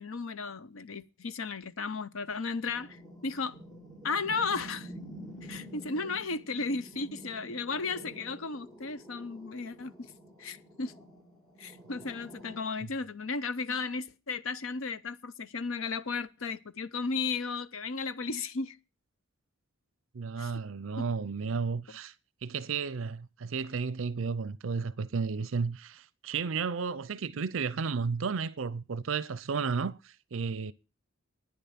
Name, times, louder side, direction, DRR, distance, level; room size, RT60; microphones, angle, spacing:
voice 1, 0.0-3.5 4.0-4.9 5.4-10.1 10.4-10.9 11.6-18.8 20.4-20.5 21.0-21.1, left 4 dB, 80° left, 0.8 m, -34 dB
sound 1, 2.7-12.6, equal, ahead, 2.9 m, -48 dB
voice 2, 20.1-22.1 22.4-30.7, right 5 dB, 70° right, 0.5 m, -33 dB
10.5 x 9.8 x 5.8 m
head